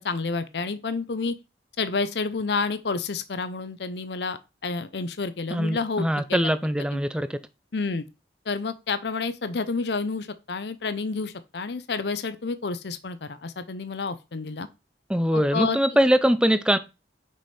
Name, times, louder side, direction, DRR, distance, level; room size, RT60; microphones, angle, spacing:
voice 1, 0.0-1.4 1.8-6.4 6.9-7.0 7.7-8.0 8.5-14.7 15.3-15.8, left 4 dB, 70° left, 0.6 m, -29 dB
voice 2, 5.5-7.4 15.1-16.8, equal, 5° right, 0.5 m, -22 dB
6.2 x 5.0 x 4.3 m
head